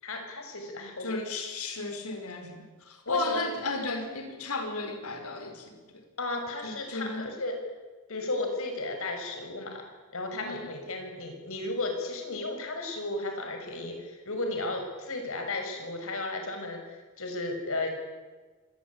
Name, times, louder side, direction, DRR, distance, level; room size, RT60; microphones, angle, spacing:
voice 1, 0.0-1.3 3.1-3.4 6.2-7.6 8.1-9.8 10.1-17.9, left 2 dB, 65° left, 4 dB, 6.2 m, -34 dB
voice 2, 1.0-5.8 6.6-7.3 10.4-10.7, left 3 dB, 90° left, 6 dB, 5.0 m, -34 dB
25.0 x 20.0 x 8.8 m, 1.3 s
head